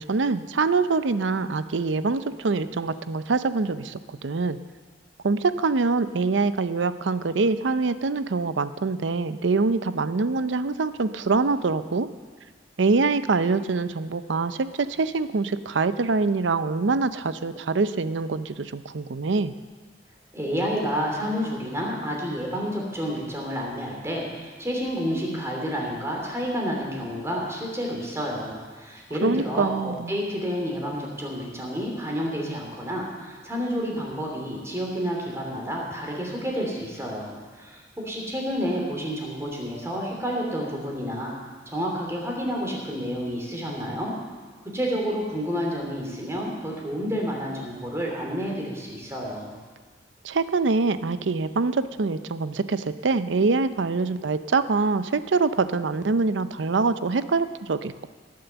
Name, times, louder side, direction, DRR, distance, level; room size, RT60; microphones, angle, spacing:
voice 1, 0.0-4.6 5.2-12.1 12.8-19.5 29.2-30.1 50.2-58.1, right 4 dB, 85° right, 12 dB, 0.6 m, -24 dB
voice 2, 20.3-41.3 41.7-44.1 44.7-49.6, equal, 15° right, -1 dB, 2.9 m, -30 dB
18.5 x 7.7 x 7.0 m, 1.4 s
head